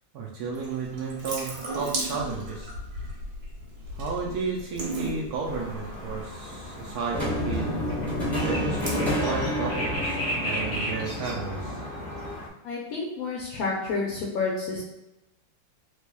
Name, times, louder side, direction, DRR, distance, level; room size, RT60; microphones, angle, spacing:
voice 1, 0.1-2.7 3.9-7.7 8.4-11.8, right 4 dB, 70° right, -2 dB, 0.9 m, -33 dB
Water tap faucet / Sink (filling or washing) / Drip, 0.5-10.3, right 1 dB, 85° right, 1.7 m, -37 dB
sound 1, 5.4-12.5, equal, 50° left, 0.4 m, -36 dB
sound 2, 7.1-12.4, left 1 dB, ahead, 0.6 m, -30 dB
voice 2, 12.6-14.8, left 4 dB, 70° left, -3 dB, 0.9 m, -29 dB
3.4 x 3.2 x 2.2 m, 0.95 s
omnidirectional pair, 2.1 m